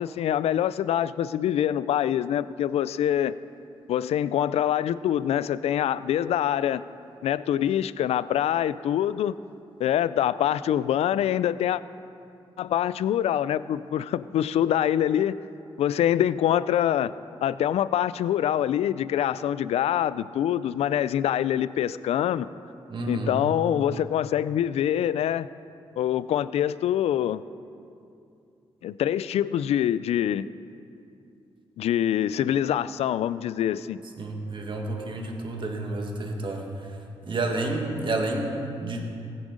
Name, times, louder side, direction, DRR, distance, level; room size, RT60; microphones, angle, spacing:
voice 1, 0.0-3.4 3.9-6.8 7.2-9.4 9.8-11.8 12.6-15.4 15.8-17.1 17.4-22.5 23.1-25.5 26.0-27.4 28.8-30.5 31.8-34.0, left 10 dB, 80° left, 16 dB, 0.4 m, -25 dB
voice 2, 22.9-23.3 34.2-36.7 37.3-39.1, right 2 dB, 50° right, 2 dB, 2.0 m, -30 dB
15.5 x 10.0 x 5.0 m, 2.6 s
cardioid pair, 60°, 11 cm